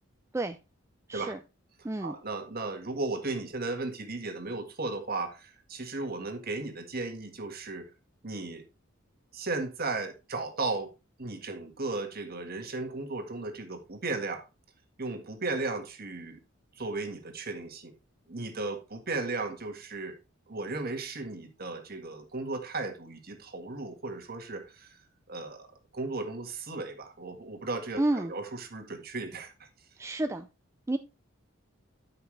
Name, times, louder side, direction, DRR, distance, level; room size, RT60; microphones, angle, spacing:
voice 1, 1.1-1.4 1.8-2.1 28.0-28.3 30.0-30.5 30.9-31.0, right 1 dB, 15° right, 0.4 m, -30 dB
voice 2, 2.0-7.9 8.2-8.7 9.3-10.9 11.2-14.4 15.0-16.4 16.7-17.9 18.3-20.2 20.5-25.0 25.3-25.7 25.9-29.7, right 3 dB, 45° right, 1.7 m, -35 dB
12.5 x 5.9 x 3.3 m
head